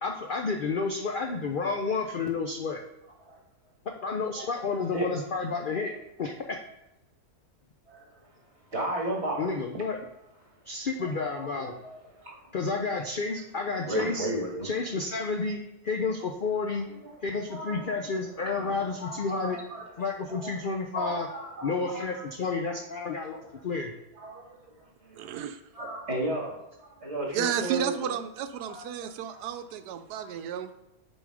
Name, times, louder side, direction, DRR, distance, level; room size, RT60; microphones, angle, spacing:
voice 1, 0.0-2.8 4.0-5.9 6.2-6.6 9.4-10.0 10.7-11.7 12.5-14.3 14.6-16.9 17.2-19.6 20.0-21.3 21.6-23.9, left 4 dB, 70° left, 3 dB, 0.5 m, -30 dB
voice 2, 4.4-5.1 7.9-8.4 8.7-9.6 10.5-10.6 11.0-12.5 13.7-14.7 16.9-17.1 17.5-18.1 18.3-20.5 20.9-22.3 22.7-22.8 23.1-23.5 24.2-25.3 25.7-28.1 28.6-29.6 30.2-30.4, right 1 dB, 45° right, -2 dB, 2.2 m, -36 dB
voice 3, 25.1-25.6 27.3-30.7, right 8 dB, 85° right, 9 dB, 1.2 m, -32 dB
7.0 x 5.3 x 4.9 m, 0.89 s
omnidirectional pair, 1.7 m